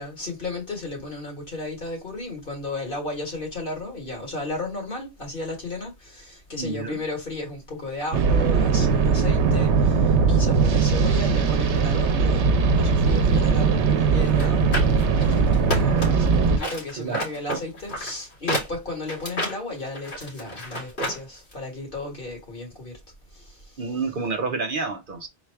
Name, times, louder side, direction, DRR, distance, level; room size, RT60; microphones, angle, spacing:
voice 1, 0.0-23.0 23.3-24.1, left 2 dB, 50° left, 2.0 m, -34 dB
voice 2, 6.6-7.0 17.0-17.3 17.5-17.6 23.8-25.3, right 4 dB, 55° right, 0.7 m, -29 dB
sound 1, 8.1-16.6, right 5 dB, 90° right, 1.0 m, -20 dB
sound 2, 14.3-16.3 16.6-21.2 21.5-21.6, equal, 70° left, 2.3 m, -30 dB
4.0 x 2.3 x 4.4 m
omnidirectional pair, 1.1 m